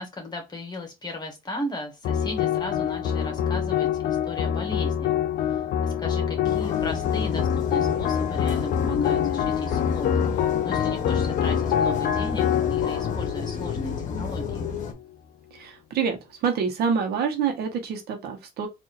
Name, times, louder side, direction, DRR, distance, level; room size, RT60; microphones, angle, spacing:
voice 1, 0.0-14.7, left 1 dB, 25° left, 1.5 m, -37 dB
sound 1, 2.0-14.5, left 9 dB, 65° left, 0.6 m, -25 dB
sound 2, 6.4-14.9, left 5 dB, 50° left, 1.0 m, -31 dB
voice 2, 15.5-18.7, right 6 dB, 70° right, 1.1 m, -27 dB
4.0 x 2.7 x 2.6 m
cardioid pair, 110°, 17 cm